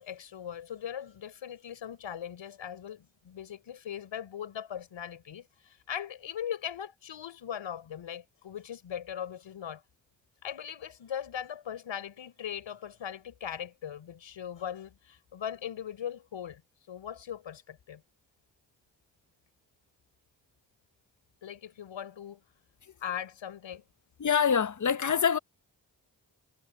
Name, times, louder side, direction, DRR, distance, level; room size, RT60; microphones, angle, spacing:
voice 1, 0.0-9.8 10.4-16.6 16.9-18.0 21.4-22.4 23.0-23.8, left 9 dB, 90° left, 6.4 m, -39 dB
voice 2, 24.2-25.4, left 7 dB, 40° left, 0.9 m, -25 dB
cardioid pair, 40°, 45 cm